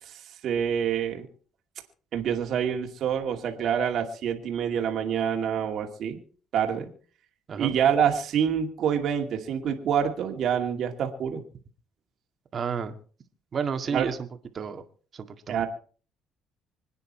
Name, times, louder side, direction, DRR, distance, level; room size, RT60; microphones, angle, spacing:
voice 1, 0.0-1.3 2.1-6.2 6.5-6.9 7.6-11.4 13.9-14.1 15.5-15.7, right 8 dB, 60° right, 3 dB, 2.4 m, -27 dB
voice 2, 12.5-13.0 13.5-14.3 14.5-14.8 15.1-15.7, right 6 dB, 40° right, 7 dB, 2.0 m, -31 dB
26.0 x 9.6 x 4.4 m, 0.42 s
cardioid pair, 110°, 0 cm